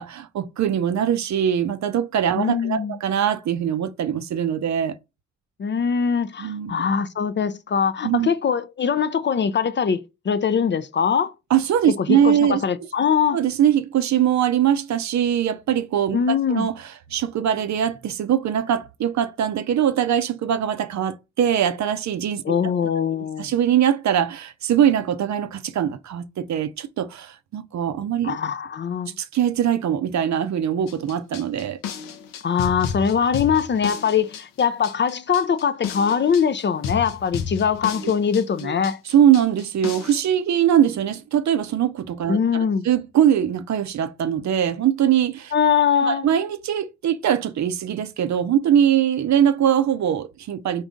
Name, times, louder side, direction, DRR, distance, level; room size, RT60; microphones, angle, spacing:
voice 1, 0.0-4.9 6.4-6.8 8.0-8.3 11.5-12.6 13.3-16.7 17.1-22.4 23.4-28.4 29.2-31.8 38.6-38.7 39.1-45.5 46.1-50.8, right 9 dB, 60° right, 0.5 m, -22 dB
voice 2, 2.4-3.0 5.6-11.3 12.0-13.4 16.1-16.7 22.4-23.5 28.2-29.2 32.4-39.0 42.3-42.9 45.5-46.3, left 7 dB, 35° left, 0.4 m, -22 dB
sound 1, 30.9-40.2, left 7 dB, 80° left, 0.6 m, -32 dB
3.8 x 2.6 x 3.6 m
supercardioid pair, 45°, 33 cm